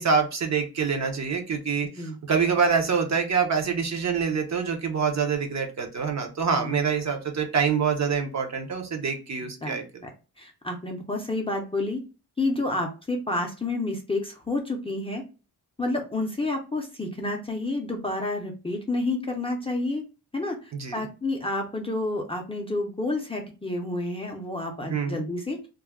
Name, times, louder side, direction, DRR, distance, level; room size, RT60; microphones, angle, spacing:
voice 1, 0.0-9.8 20.7-21.1 24.9-25.2, right 6 dB, 45° right, 4 dB, 0.6 m, -26 dB
voice 2, 10.4-12.0 12.4-15.2 15.8-20.0 20.3-25.6, left 2 dB, 15° left, 1 dB, 0.5 m, -29 dB
2.3 x 2.1 x 3.4 m, 0.32 s
wide cardioid pair, 140°, 38 cm